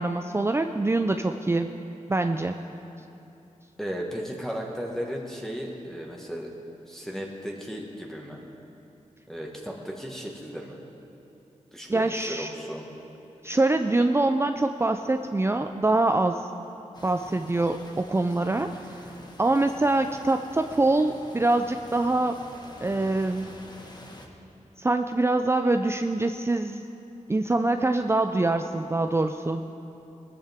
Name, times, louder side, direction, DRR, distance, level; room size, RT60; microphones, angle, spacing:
voice 1, 0.0-1.7 2.1-2.6 11.9-12.5 13.4-16.4 17.0-18.7 19.4-22.4 22.8-23.6 24.8-26.8 27.3-29.6, right 2 dB, 20° right, 6 dB, 0.5 m, -24 dB
voice 2, 3.8-6.5 6.9-8.4 9.3-10.8 11.7-12.9, equal, 5° left, -2 dB, 1.7 m, -35 dB
sound 1, 16.9-24.3, left 1 dB, 30° left, 1.5 m, -47 dB
19.0 x 14.0 x 3.6 m, 2.9 s
wide cardioid pair, 70°, 13 cm